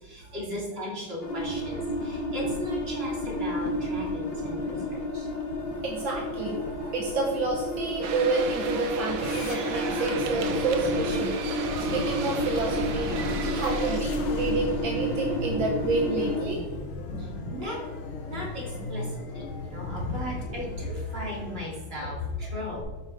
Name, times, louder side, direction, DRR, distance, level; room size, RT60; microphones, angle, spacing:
voice 1, 0.0-5.3 17.2-17.8 18.2-19.1 19.3-22.8, left 1 dB, 30° right, -4 dB, 3.1 m, -36 dB
sound 1, 1.2-16.4, left 1 dB, 65° left, 2.4 m, -31 dB
voice 2, 5.8-16.7 22.0-22.1 22.4-22.5, right 3 dB, 70° right, 0 dB, 1.9 m, -30 dB
sound 2, 8.0-14.0, right 5 dB, 55° right, 1.1 m, -35 dB
sound 3, 9.2-21.8, left 2 dB, 85° left, 1.9 m, -36 dB
13.0 x 5.6 x 4.8 m, 1.2 s
omnidirectional pair, 2.2 m